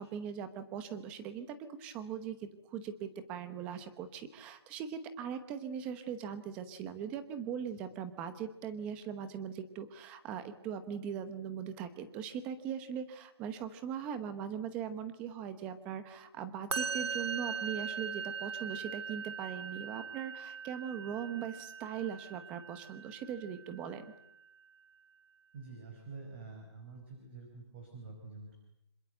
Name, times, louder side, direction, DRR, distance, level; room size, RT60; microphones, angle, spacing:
voice 1, 0.0-24.0, right 8 dB, 10° right, 11 dB, 0.9 m, -40 dB
Musical instrument, 16.7-24.0, right 6 dB, 70° right, 2.3 m, -40 dB
voice 2, 25.5-28.6, right 4 dB, 25° right, 3 dB, 4.7 m, -48 dB
26.5 x 26.0 x 8.0 m, 0.81 s
hypercardioid pair, 175°, 14 cm